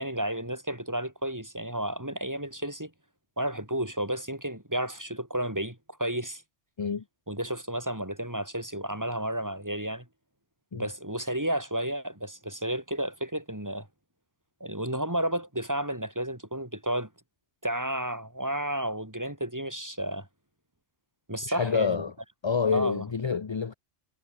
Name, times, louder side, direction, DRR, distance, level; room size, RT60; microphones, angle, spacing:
voice 1, 0.0-2.9 3.4-6.4 7.3-10.1 10.7-13.9 14.6-17.1 17.6-20.3 21.3-22.0 22.7-23.0, right 1 dB, 15° right, 3.2 m, -32 dB
voice 2, 21.5-22.1 22.4-23.7, left 6 dB, 35° left, 0.5 m, -27 dB
omnidirectional pair, 1.3 m